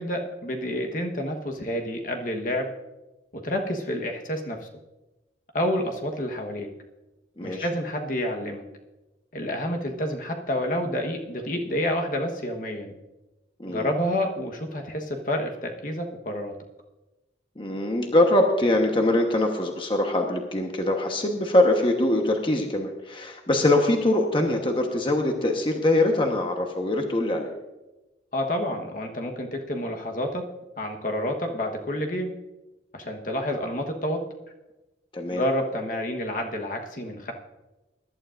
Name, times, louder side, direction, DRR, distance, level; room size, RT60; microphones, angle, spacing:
voice 1, 0.0-2.7 3.3-4.7 5.5-6.7 7.4-8.6 9.3-12.9 13.7-16.5 28.3-30.5 30.8-32.3 32.9-34.3 35.3-37.3, left 1 dB, 45° left, 3 dB, 1.2 m, -29 dB
voice 2, 7.4-7.7 13.6-13.9 17.6-27.5 35.1-35.4, left 1 dB, 30° left, 2 dB, 1.1 m, -23 dB
22.0 x 11.5 x 2.6 m, 1.1 s
head